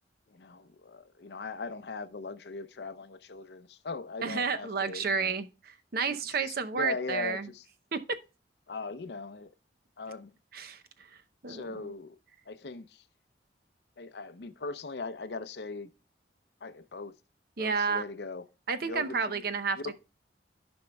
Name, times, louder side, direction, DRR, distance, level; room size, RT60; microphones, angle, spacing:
voice 1, 0.3-5.4 6.0-6.2 6.4-7.7 8.7-9.5 10.0-10.3 11.5-12.2 12.5-13.0 14.0-15.9 16.6-17.1 17.6-18.4 18.8-19.4 19.8-19.9, left 3 dB, 65° left, 0.6 m, -39 dB
voice 2, 4.2-7.5 7.9-8.2 10.5-10.8 11.4-11.8 17.6-18.0 18.7-19.9, right 5 dB, 60° right, 0.7 m, -31 dB
15.0 x 5.2 x 2.3 m
head